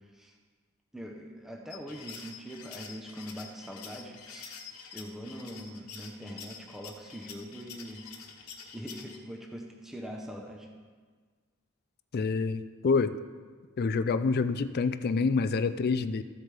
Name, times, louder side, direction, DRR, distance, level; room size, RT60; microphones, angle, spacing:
voice 1, 0.9-4.5 4.9-8.0 8.7-10.7, equal, ahead, 0 dB, 0.7 m, -42 dB
sound 1, 1.7-9.2, left 6 dB, 75° left, 1.2 m, -47 dB
voice 2, 12.1-13.2 13.8-16.2, left 4 dB, 45° left, 13 dB, 0.3 m, -27 dB
14.0 x 8.0 x 3.3 m, 1.5 s
head